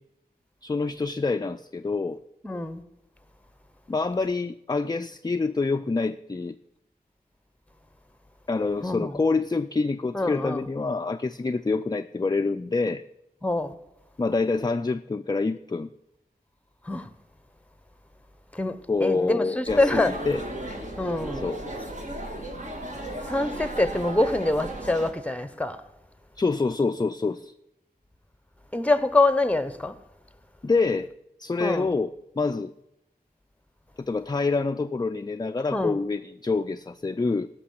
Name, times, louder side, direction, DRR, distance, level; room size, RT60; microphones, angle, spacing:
voice 1, 0.6-2.2 3.9-6.5 8.5-13.0 14.2-15.9 18.9-20.4 21.3-21.6 26.4-27.5 30.6-31.1 31.4-32.7 34.0-37.5, left 3 dB, 25° left, 0.4 m, -26 dB
voice 2, 2.4-2.8 8.8-9.1 10.1-10.6 13.4-13.8 16.9-17.1 18.5-20.1 21.0-21.5 23.3-25.8 28.7-30.0 31.6-31.9 35.7-36.0, left 2 dB, 10° left, 0.9 m, -25 dB
sound 1, 19.7-25.1, right 1 dB, 50° right, 1.9 m, -35 dB
17.0 x 6.1 x 6.6 m
wide cardioid pair, 75°, 16 cm